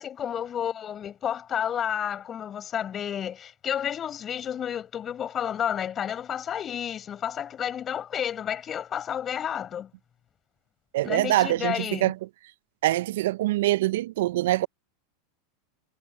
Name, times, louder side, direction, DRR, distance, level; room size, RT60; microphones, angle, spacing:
voice 1, 0.0-9.9 11.0-12.1, left 9 dB, 35° left, 6.8 m, -31 dB
voice 2, 10.9-12.1 12.8-14.7, right 16 dB, 75° right, 0.7 m, -24 dB
hypercardioid pair, 100°, 0 cm